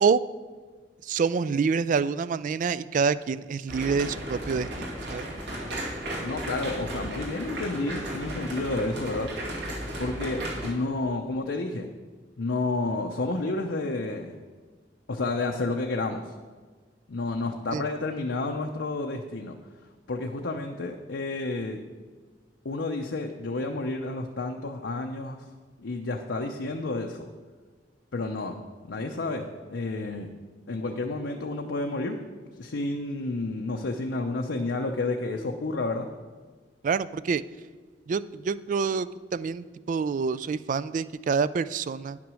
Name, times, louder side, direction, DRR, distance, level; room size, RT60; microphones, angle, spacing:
voice 1, 1.0-5.3 17.7-17.8 36.8-37.4 38.1-42.2, right 5 dB, 45° right, 16 dB, 0.3 m, -27 dB
sound 1, 3.7-10.7, right 1 dB, 70° right, 2.2 m, -35 dB
voice 2, 6.2-9.3 10.0-11.9 12.4-14.4 15.1-16.3 17.1-19.6 20.1-21.8 22.6-25.4 25.8-27.3 28.1-28.6 28.9-30.3 30.7-32.3 32.6-36.1, left 2 dB, 75° left, 2 dB, 0.6 m, -30 dB
9.8 x 6.0 x 6.2 m, 1.5 s
head